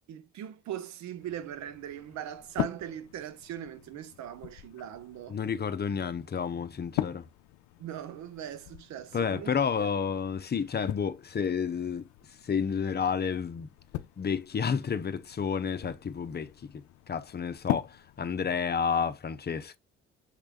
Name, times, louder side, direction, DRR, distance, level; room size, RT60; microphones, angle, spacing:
voice 1, 0.1-5.4 7.8-9.9, right 10 dB, 65° right, 0.9 m, -40 dB
sound 1, 1.2-19.2, left 15 dB, 75° left, 0.5 m, -41 dB
voice 2, 5.3-7.2 9.1-12.0 12.4-13.7 14.2-17.9 18.2-19.8, left 6 dB, 35° left, 0.7 m, -30 dB
6.6 x 3.3 x 2.3 m
hypercardioid pair, 50°, 30 cm